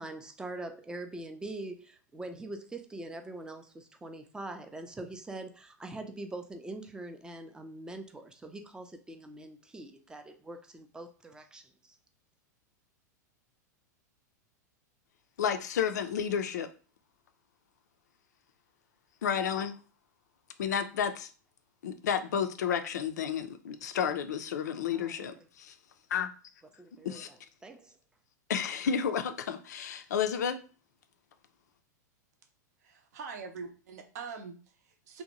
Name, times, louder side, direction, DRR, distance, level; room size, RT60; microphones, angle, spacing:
voice 1, 0.0-12.0 24.9-25.4 26.8-27.4 27.6-27.9, right 2 dB, 10° right, 0.3 m, -43 dB
voice 2, 15.4-16.7 19.2-19.8 20.6-21.3 21.8-25.7 26.1-26.3 27.0-27.3 28.5-30.6, left 7 dB, 65° left, 0.3 m, -31 dB
voice 3, 32.8-35.2, right 5 dB, 60° right, 0.6 m, -43 dB
2.6 x 2.1 x 2.8 m
figure-of-eight pair, 95°, 10 cm